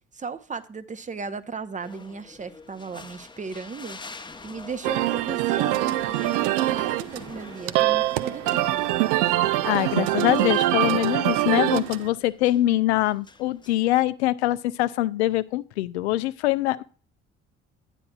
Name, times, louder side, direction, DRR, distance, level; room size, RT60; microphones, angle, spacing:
voice 1, 0.1-4.2 4.4-8.8, right 5 dB, 20° right, 0.8 m, -36 dB
sound 1, 1.8-13.7, left 3 dB, 15° left, 0.9 m, -47 dB
sound 2, 4.8-12.1, right 15 dB, 60° right, 0.5 m, -24 dB
voice 2, 9.6-16.8, left 15 dB, 75° left, 0.5 m, -23 dB
9.9 x 9.7 x 2.3 m
figure-of-eight pair, 50°, 34 cm